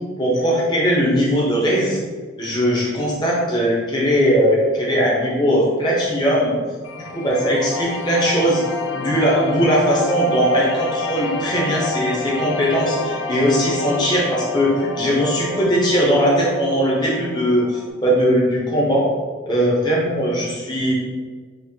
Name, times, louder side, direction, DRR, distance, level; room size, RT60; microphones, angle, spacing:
voice 1, 0.2-2.0 2.4-6.6 7.1-8.6 8.9-19.0 19.4-20.9, equal, 20° left, -5 dB, 0.9 m, -19 dB
sound 1, 6.8-17.9, left 3 dB, 75° left, 0.4 m, -29 dB
4.2 x 2.0 x 3.6 m, 1.5 s
head